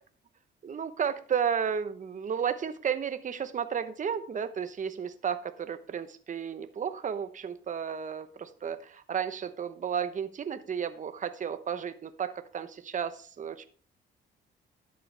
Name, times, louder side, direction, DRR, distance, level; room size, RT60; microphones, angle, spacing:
voice 1, 0.6-13.6, right 7 dB, 40° right, 10 dB, 0.9 m, -33 dB
12.0 x 7.7 x 3.3 m, 0.43 s
cardioid pair, 90°, 20 cm